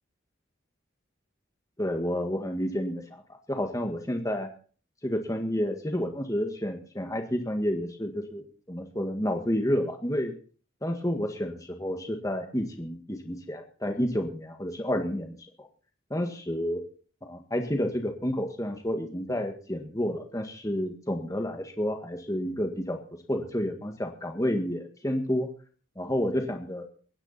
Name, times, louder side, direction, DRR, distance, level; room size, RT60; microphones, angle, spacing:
voice 1, 1.8-3.0 3.5-4.5 5.0-10.3 10.8-15.7 16.1-16.8 17.3-23.0 23.3-25.5 25.9-26.9, equal, 15° left, 4 dB, 1.7 m, -30 dB
23.5 x 9.9 x 4.2 m, 0.40 s
head